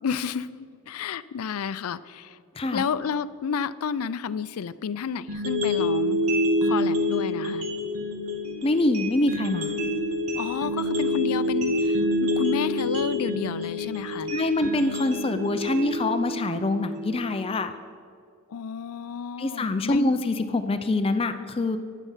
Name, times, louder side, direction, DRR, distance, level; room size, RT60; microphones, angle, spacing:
voice 1, 0.0-2.4 2.7-6.2 6.6-7.7 10.4-14.3 18.5-20.0, left 6 dB, 85° left, 16 dB, 0.4 m, -31 dB
sound 1, 5.3-17.3, left 1 dB, 85° right, 2.0 m, -27 dB
voice 2, 8.6-9.7 14.3-17.7 19.4-21.8, left 2 dB, 25° left, 9 dB, 0.4 m, -25 dB
11.5 x 9.3 x 5.6 m, 2.2 s
head